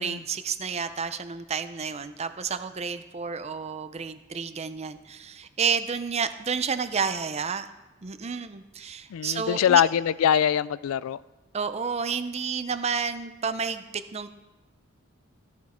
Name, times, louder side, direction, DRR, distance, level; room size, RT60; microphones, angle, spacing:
voice 1, 0.0-7.7 8.0-9.8 11.5-14.3, right 6 dB, 30° right, 11 dB, 0.5 m, -30 dB
voice 2, 9.1-11.2, left 9 dB, 85° left, 19 dB, 0.3 m, -23 dB
14.5 x 7.3 x 4.3 m, 1.1 s
head